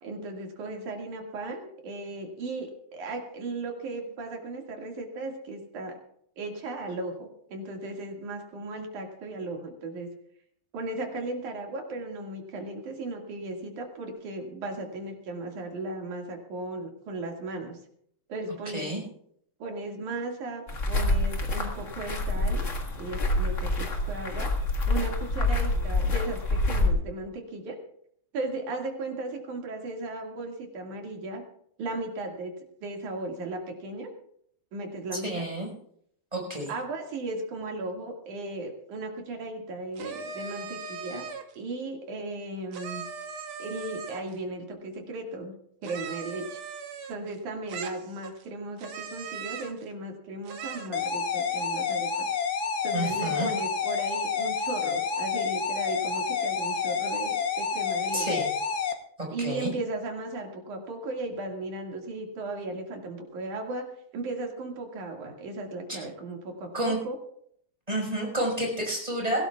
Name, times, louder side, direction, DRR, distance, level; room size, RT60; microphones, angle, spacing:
voice 1, 0.0-6.0 6.4-10.1 10.7-17.8 18.3-18.9 19.6-22.7 23.0-24.5 24.9-27.8 28.3-31.4 31.8-32.5 32.8-34.1 34.7-35.5 36.7-41.3 41.6-43.0 43.6-45.6 45.8-46.6 47.1-52.3 52.8-58.5 59.3-67.2, right 2 dB, 75° right, 2 dB, 3.6 m, -36 dB
sound 1, 20.7-26.9, left 2 dB, 35° left, 1.4 m, -27 dB
voice 2, 35.2-35.7 36.3-36.7 52.9-53.5 58.1-58.5 59.2-59.7 65.9-66.0 66.7-67.0 67.9-69.5, right 1 dB, 10° right, -1 dB, 5.3 m, -30 dB
sound 2, 40.0-41.6 42.7-44.4 45.8-47.4 47.7-48.4 48.8-49.8 50.5-51.0, right 5 dB, 60° right, 1.6 m, -39 dB
sound 3, 50.9-58.9, left 6 dB, 80° left, 0.8 m, -29 dB
23.0 x 17.0 x 2.4 m, 0.68 s
omnidirectional pair, 3.5 m